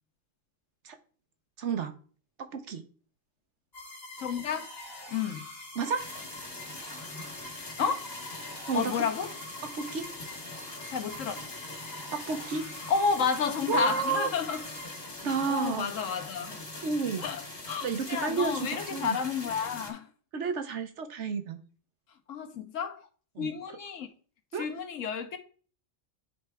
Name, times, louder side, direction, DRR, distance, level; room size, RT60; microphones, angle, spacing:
voice 1, 1.6-1.9 2.4-2.8 5.7-6.0 8.7-8.9 9.7-10.1 12.1-12.6 13.7-14.3 15.2-15.9 16.8-17.2 17.8-19.2 20.3-21.6 23.3-23.5 24.5-24.7, right 5 dB, 65° right, 1.1 m, -31 dB
sound 1, 3.7-15.6, left 1 dB, 35° left, 1.9 m, -45 dB
voice 2, 4.2-4.7 5.1-5.4 7.8-8.1 8.7-9.3 10.9-11.4 12.9-14.6 15.3-16.5 17.2-20.1 22.3-23.0 23.4-24.1 24.6-25.4, left 6 dB, 80° left, 1.3 m, -31 dB
sound 2, 6.0-19.9, left 2 dB, 50° left, 2.3 m, -43 dB
9.7 x 3.3 x 4.7 m
omnidirectional pair, 1.3 m